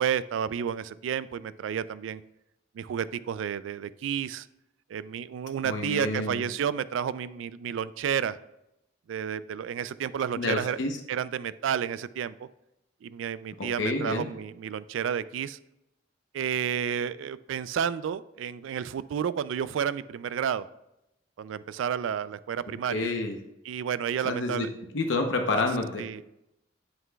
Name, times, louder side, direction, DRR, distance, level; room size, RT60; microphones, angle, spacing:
voice 1, 0.0-2.2 2.7-4.5 4.9-8.4 9.1-10.8 11.1-12.5 13.0-15.6 16.3-20.7 21.4-23.1 23.7-24.7 26.0-26.2, right 8 dB, 85° right, 16 dB, 0.3 m, -31 dB
voice 2, 5.6-6.4 10.4-11.0 13.6-14.3 22.9-23.4 24.2-24.7 24.9-26.0, left 2 dB, 80° left, 3 dB, 0.8 m, -28 dB
8.0 x 7.7 x 2.2 m, 0.86 s
head